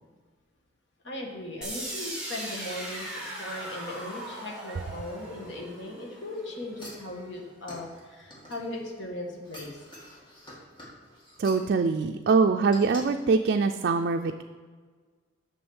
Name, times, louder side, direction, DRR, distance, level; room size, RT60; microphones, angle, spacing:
voice 1, 1.0-9.7, left 1 dB, 70° left, 0 dB, 1.5 m, -38 dB
sound 1, 1.6-7.5, right 1 dB, 5° right, 2.0 m, -39 dB
sound 2, 6.8-9.0 9.4-11.7 12.7-13.0 13.5-13.6, left 1 dB, 25° left, 2.0 m, -47 dB
voice 2, 11.4-14.4, right 4 dB, 55° right, 5 dB, 0.4 m, -24 dB
6.8 x 6.3 x 7.0 m, 1.5 s
head